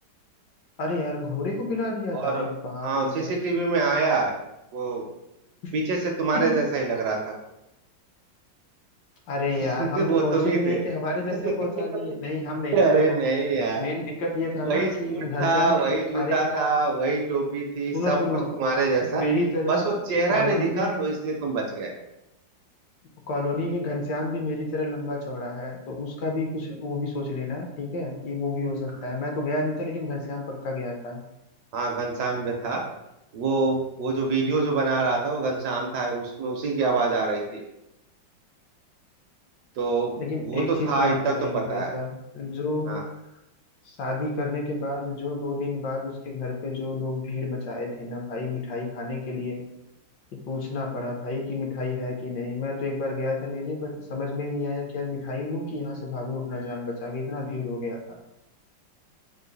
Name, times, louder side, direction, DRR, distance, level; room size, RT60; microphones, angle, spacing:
voice 1, 0.8-3.3 5.6-5.7 6.3-6.6 9.3-13.2 13.8-15.8 16.1-16.8 17.9-18.5 19.0-20.0 20.3-21.0 23.3-31.2 40.2-43.0 43.8-49.6 50.3-58.0, left 2 dB, 70° left, 1 dB, 1.2 m, -30 dB
voice 2, 2.1-2.5 2.8-4.3 4.7-5.1 5.7-7.3 9.6-10.9 11.4-11.5 12.7-13.9 14.6-18.2 18.5-19.2 19.7-21.9 31.7-32.8 33.3-37.6 39.8-41.9 42.9-43.0, right 3 dB, 70° right, 1 dB, 1.0 m, -25 dB
3.8 x 2.4 x 3.8 m, 0.88 s
omnidirectional pair, 2.0 m